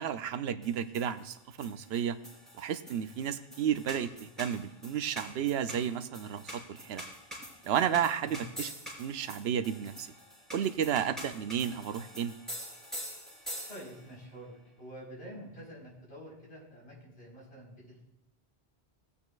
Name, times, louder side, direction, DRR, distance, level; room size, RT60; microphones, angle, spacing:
voice 1, 0.0-2.2 2.6-7.0 7.6-8.7 9.0-10.1 10.5-12.3, right 9 dB, 75° right, 11 dB, 0.9 m, -32 dB
sound 1, 0.6-14.1, equal, ahead, 3.7 m, -46 dB
voice 2, 13.7-18.0, equal, 70° left, -5 dB, 4.6 m, -48 dB
18.0 x 8.5 x 2.4 m, 0.87 s
omnidirectional pair, 1.1 m